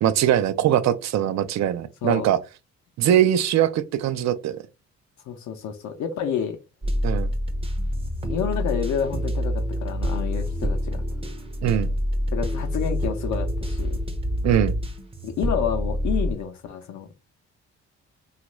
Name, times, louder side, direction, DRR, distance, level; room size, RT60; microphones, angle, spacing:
voice 1, 0.0-2.4 3.0-4.6 7.0-7.3 11.6-11.9 14.4-14.8, right 11 dB, 60° right, 0.5 m, -21 dB
voice 2, 5.3-6.6 8.3-11.0 12.3-14.0 15.2-17.3, left 8 dB, 70° left, 0.6 m, -29 dB
sound 1, 6.8-16.3, equal, 20° right, 0.6 m, -27 dB
3.0 x 2.4 x 3.0 m
cardioid pair, 90°, 30 cm